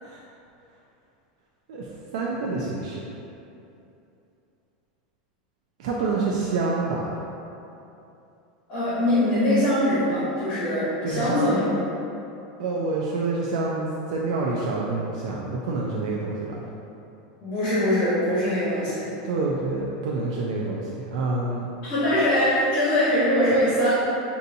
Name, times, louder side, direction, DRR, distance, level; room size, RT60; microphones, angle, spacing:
voice 1, 2.1-3.1 5.8-7.1 11.0-11.5 12.6-16.6 19.2-21.7, right 3 dB, 60° right, -3 dB, 0.4 m, -27 dB
voice 2, 8.7-11.6 17.4-19.1 21.8-23.9, left 1 dB, 35° left, -11 dB, 1.1 m, -22 dB
5.4 x 2.7 x 2.6 m, 2.8 s
supercardioid pair, 180°, 4 cm